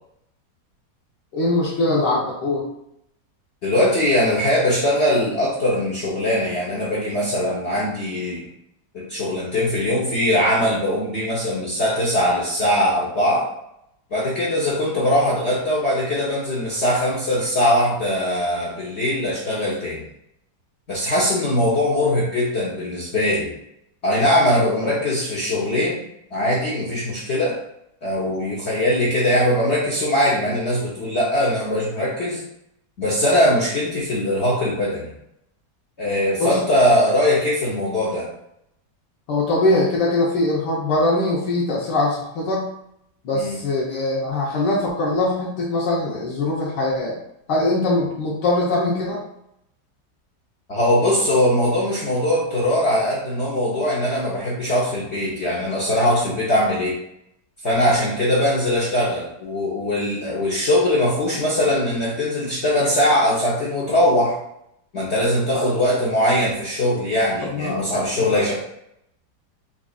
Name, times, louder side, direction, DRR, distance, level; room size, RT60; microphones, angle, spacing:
voice 1, 1.3-2.6 36.4-36.6 39.3-42.7 43.2-47.2 47.5-49.2 65.5-65.7 67.4-68.3, left 2 dB, 75° left, -5 dB, 1.4 m, -22 dB
voice 2, 3.6-8.4 8.9-13.5 14.1-20.0 20.9-23.5 24.0-25.9 26.3-27.6 28.0-32.4 33.0-35.1 36.0-38.3 43.3-43.6 50.7-56.9 57.6-64.4 64.9-68.5, left 1 dB, 60° left, -6 dB, 0.7 m, -21 dB
5.2 x 2.4 x 2.3 m, 0.77 s
omnidirectional pair, 1.9 m